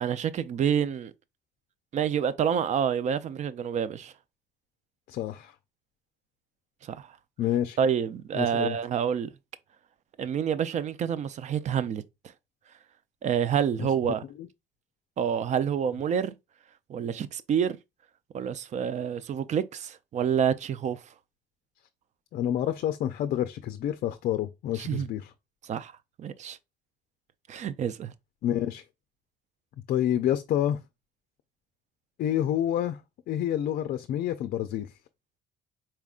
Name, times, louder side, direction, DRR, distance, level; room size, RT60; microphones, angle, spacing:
voice 1, 0.0-1.1 1.9-4.1 6.9-7.1 7.8-9.3 10.2-12.0 13.2-14.2 15.2-16.3 16.9-17.8 18.3-21.0 24.8-25.1 25.6-25.9 26.2-26.6 27.5-28.1, right 8 dB, 45° right, 0.4 m, -28 dB
voice 2, 5.1-5.5 7.4-7.8 8.3-8.8 13.8-13.9 14.4-14.5 22.3-25.3 28.4-28.8 29.9-30.8 32.2-33.0 33.3-34.9, left 11 dB, 60° left, 0.4 m, -28 dB
4.3 x 3.6 x 2.4 m
cardioid pair, 110°, 17 cm